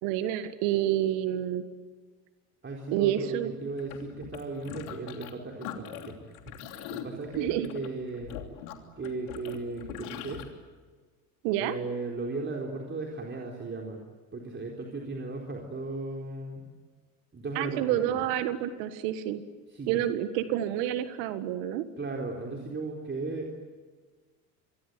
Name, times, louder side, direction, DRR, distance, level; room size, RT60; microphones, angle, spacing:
voice 1, 0.0-1.6 2.9-3.5 7.4-7.7 11.4-11.8 17.6-19.4 19.9-21.9, right 12 dB, 65° right, 11 dB, 1.8 m, -28 dB
voice 2, 2.6-8.4 9.0-10.4 11.6-14.0 14.3-16.7 17.3-17.8 18.1-18.3 19.7-20.0 22.0-23.6, right 3 dB, 25° right, 0 dB, 4.3 m, -36 dB
sound 1, 3.8-5.3 5.6-10.4, left 10 dB, 70° left, 3.2 m, -42 dB
27.0 x 23.0 x 9.4 m, 1.4 s
hypercardioid pair, 75°, 44 cm